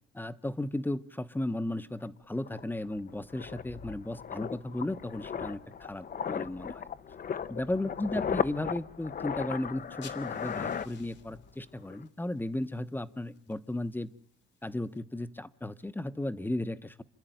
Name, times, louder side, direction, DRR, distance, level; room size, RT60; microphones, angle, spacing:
voice 1, 0.1-6.9 7.5-14.1 14.6-17.0, left 1 dB, 10° left, 14 dB, 1.0 m, -35 dB
sound 1, 2.4-11.5 11.8-12.0, left 7 dB, 45° left, 0.9 m, -37 dB
sound 2, 9.8-15.0, left 7 dB, 65° left, 2.4 m, -57 dB
27.5 x 11.5 x 9.2 m, 0.62 s
cardioid pair, 90°, 20 cm